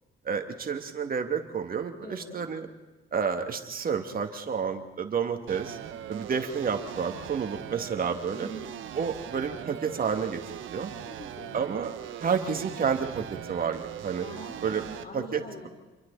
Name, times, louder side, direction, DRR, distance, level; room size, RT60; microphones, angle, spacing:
voice 1, 0.2-2.7 3.1-5.8 6.1-8.5 8.9-10.9 11.5-14.3 14.6-14.8 15.1-15.7, right 6 dB, 45° right, 5 dB, 2.7 m, -30 dB
voice 2, 2.0-2.4 8.3-8.7 11.0-11.6 14.2-15.7, equal, 50° left, 2 dB, 4.2 m, -43 dB
sound 1, 5.5-15.0, right 10 dB, 75° right, 1.4 m, -40 dB
29.0 x 23.0 x 4.3 m, 1.2 s
cardioid pair, 90°, 20 cm